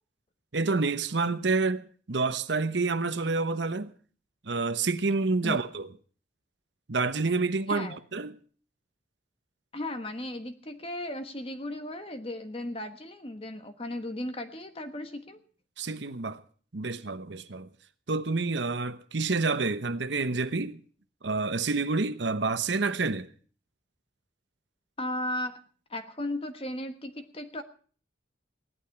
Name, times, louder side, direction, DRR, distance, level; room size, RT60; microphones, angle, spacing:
voice 1, 0.5-3.9 4.4-5.9 6.9-8.4 15.8-16.4 16.7-17.7 18.1-20.8 21.2-23.3, right 3 dB, 70° right, 1.0 m, -28 dB
voice 2, 7.7-8.0 9.7-15.4 25.0-25.6 25.9-27.6, left 1 dB, 30° left, 1.3 m, -35 dB
17.0 x 12.0 x 5.9 m
head